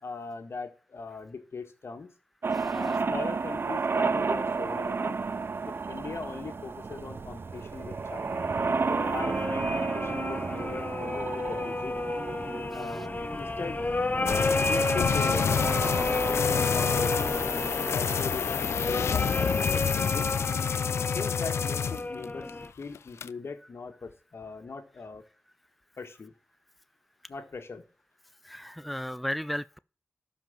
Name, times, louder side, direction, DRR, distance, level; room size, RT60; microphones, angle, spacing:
voice 1, 0.0-2.1 2.7-5.2 5.7-8.5 8.9-12.0 12.7-13.8 14.5-17.4 17.9-20.3 21.1-25.2 26.0-26.3 27.3-27.9, left 4 dB, 70° left, 1.8 m, -40 dB
sound 1, 2.4-18.3, right 4 dB, 55° right, 0.5 m, -33 dB
sound 2, 8.3-22.7, left 2 dB, 35° left, 1.0 m, -31 dB
sound 3, 14.3-22.5 22.8-23.3, left 7 dB, 90° left, 0.4 m, -28 dB
voice 2, 28.4-29.8, equal, ahead, 0.4 m, -34 dB
12.5 x 5.2 x 7.4 m
cardioid pair, 45°, 4 cm